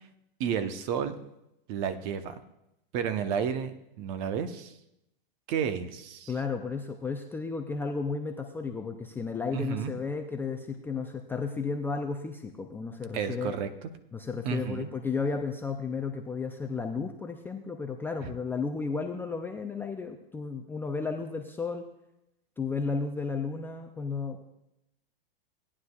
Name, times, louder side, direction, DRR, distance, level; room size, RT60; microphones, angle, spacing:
voice 1, 0.4-1.2 1.7-2.4 2.9-4.7 5.5-6.3 9.5-9.9 13.1-13.7 14.4-14.9 18.2-18.3, right 7 dB, 40° right, 10 dB, 0.9 m, -31 dB
voice 2, 6.3-13.5 14.1-21.9 22.6-24.4, left 4 dB, 5° left, 3 dB, 0.4 m, -33 dB
17.0 x 9.8 x 2.3 m, 0.85 s
hypercardioid pair, 125°, 29 cm